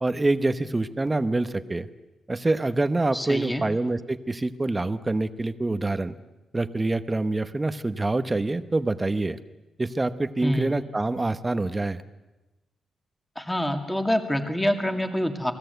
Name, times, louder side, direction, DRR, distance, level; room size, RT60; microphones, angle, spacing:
voice 1, 0.0-1.9 2.3-6.1 6.5-9.4 9.8-12.0, right 2 dB, 15° right, 11 dB, 1.0 m, -26 dB
voice 2, 3.1-3.6 10.4-10.7 13.4-15.5, equal, 5° left, 5 dB, 2.1 m, -26 dB
28.5 x 19.5 x 8.0 m, 1.1 s
wide cardioid pair, 145°, 0 cm